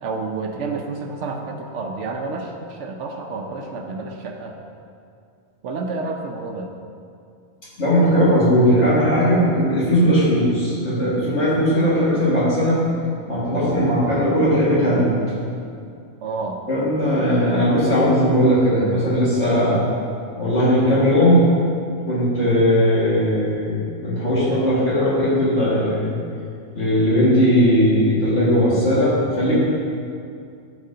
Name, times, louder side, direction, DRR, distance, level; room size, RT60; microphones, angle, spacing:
voice 1, 0.0-4.6 5.6-6.7 16.2-16.6 17.5-17.6, right 3 dB, 70° right, 3 dB, 0.9 m, -29 dB
voice 2, 7.8-12.8 13.3-15.1 16.7-19.8 20.4-21.5 22.1-26.2 26.7-29.6, equal, 60° left, -9 dB, 2.3 m, -18 dB
12.5 x 4.3 x 2.8 m, 2.4 s
omnidirectional pair, 1.3 m